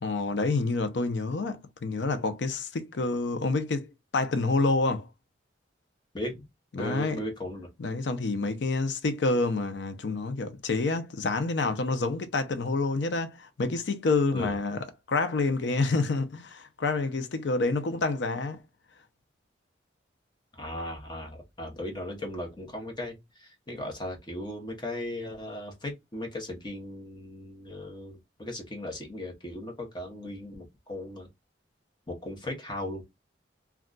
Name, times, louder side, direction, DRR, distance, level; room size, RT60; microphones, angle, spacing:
voice 1, 0.0-5.1 6.8-7.2 7.8-18.6, left 3 dB, 70° left, 0.5 m, -28 dB
voice 2, 6.7-7.7 14.3-14.5 20.5-31.3 32.1-33.0, left 1 dB, 25° left, 0.7 m, -37 dB
2.3 x 2.2 x 3.7 m
head